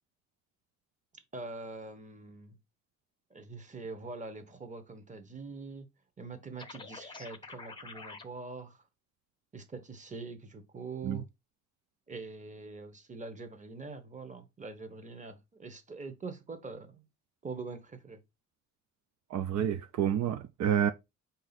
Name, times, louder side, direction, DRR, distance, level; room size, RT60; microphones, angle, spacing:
voice 1, 1.3-2.6 3.3-5.9 6.2-8.8 9.5-11.2 12.1-17.1 17.4-18.2, right 3 dB, 25° right, 1.0 m, -44 dB
sound 1, 6.6-8.2, left 4 dB, 15° left, 0.6 m, -46 dB
voice 2, 19.3-20.9, right 9 dB, 65° right, 0.5 m, -29 dB
4.8 x 2.7 x 4.0 m
cardioid pair, 90°, 30 cm